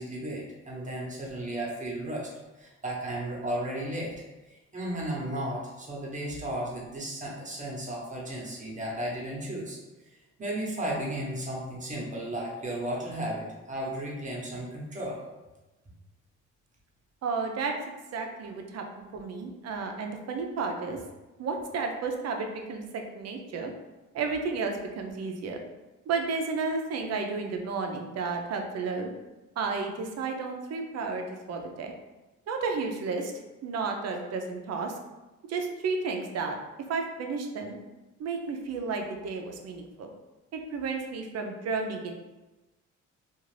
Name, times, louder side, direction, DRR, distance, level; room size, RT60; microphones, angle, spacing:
voice 1, 0.0-2.3 2.6-4.2 4.7-9.8 10.4-15.2 18.2-18.3, right 1 dB, 25° right, -3 dB, 0.9 m, -34 dB
voice 2, 17.2-17.7 18.1-18.8 19.1-21.0 21.4-23.7 24.1-25.6 26.1-29.1 29.6-31.9 32.5-33.3 33.6-35.0 35.5-36.6 36.9-37.8 38.2-40.1 40.5-42.1, right 4 dB, 55° right, 3 dB, 0.5 m, -32 dB
2.4 x 2.4 x 3.2 m, 1.1 s
cardioid pair, 90°, 30 cm